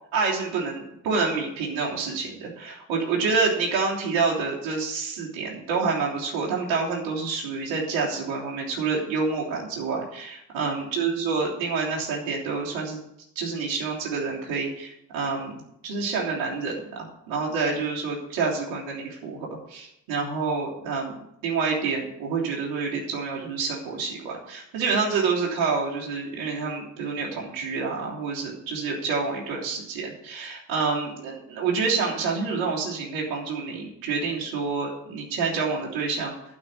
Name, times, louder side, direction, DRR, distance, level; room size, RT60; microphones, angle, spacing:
voice 1, 0.1-13.0 13.3-15.5 15.8-21.2 21.4-36.4, right 4 dB, 65° right, -3 dB, 3.3 m, -28 dB
11.5 x 5.6 x 8.3 m, 0.78 s
hypercardioid pair, 50°, 50 cm